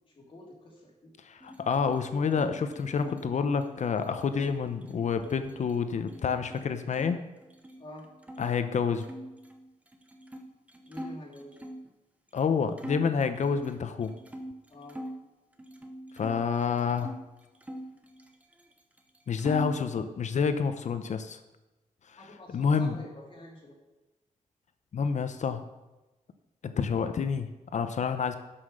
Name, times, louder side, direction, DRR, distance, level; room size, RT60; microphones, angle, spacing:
voice 1, 0.2-1.1 7.8-8.1 10.9-11.6 14.7-15.0 22.2-23.7, left 1 dB, 40° left, -2 dB, 2.7 m, -47 dB
voice 2, 1.2-7.2 8.4-9.1 12.3-14.1 16.1-17.1 19.3-21.4 22.1-23.0 24.9-25.6 26.6-28.4, left 6 dB, 65° left, 9 dB, 0.7 m, -28 dB
sound 1, 1.4-7.1 7.4-8.4 9.0-11.9 12.4-12.5 12.8-15.2 15.6-17.2 17.6-18.7 19.0-19.9, equal, 10° right, 0.9 m, -44 dB
11.0 x 5.8 x 6.6 m, 1.1 s
wide cardioid pair, 160°, 13 cm